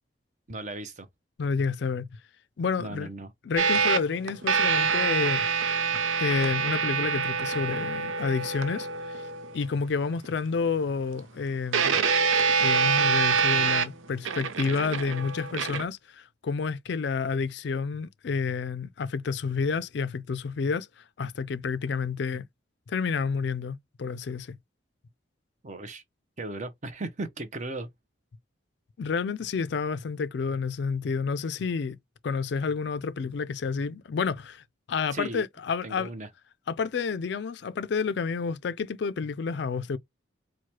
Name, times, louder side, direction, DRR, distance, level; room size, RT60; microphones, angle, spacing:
voice 1, 0.5-1.1 2.8-3.3 25.6-26.0 26.4-27.9 35.1-35.4 35.8-36.3, right 2 dB, 40° right, 0.6 m, -36 dB
voice 2, 1.4-2.1 2.6-3.1 3.4-5.4 6.2-9.3 9.5-12.1 12.6-22.4 22.9-24.6 29.0-32.0 32.2-36.1 36.7-40.0, left 5 dB, 60° left, 0.4 m, -30 dB
sound 1, 3.6-9.6 10.2-10.3 11.7-15.8, right 5 dB, 85° right, 0.6 m, -26 dB
4.6 x 2.1 x 2.8 m
head